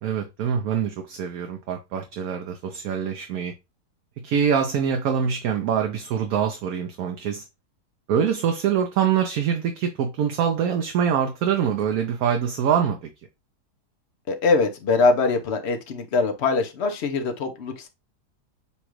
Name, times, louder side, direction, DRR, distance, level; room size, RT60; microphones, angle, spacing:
voice 1, 0.0-3.5 4.2-7.4 8.1-13.1, right 8 dB, 70° right, 1.1 m, -24 dB
voice 2, 14.3-17.9, left 4 dB, 60° left, 0.7 m, -22 dB
7.0 x 2.4 x 3.0 m
omnidirectional pair, 1.7 m